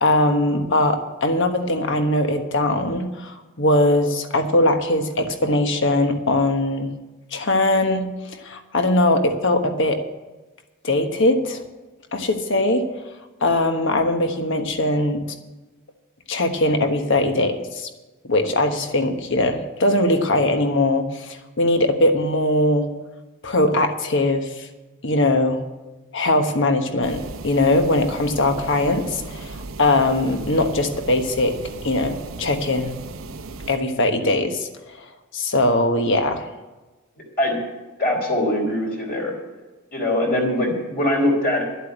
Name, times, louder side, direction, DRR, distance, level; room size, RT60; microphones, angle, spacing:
voice 1, 0.0-6.9 7.3-8.1 8.4-10.0 10.8-11.6 12.1-12.9 13.4-15.2 16.3-17.9 18.2-22.9 23.4-24.7 25.0-25.6 26.1-31.5 31.8-32.9 33.7-34.7 35.3-36.4, left 1 dB, 60° left, 6 dB, 1.3 m, -20 dB
sound 1, 27.0-33.8, right 3 dB, 65° right, 0.8 m, -36 dB
voice 2, 38.0-39.3 39.9-41.6, left 1 dB, 45° left, -1 dB, 3.4 m, -22 dB
11.5 x 8.0 x 8.0 m, 1.2 s
head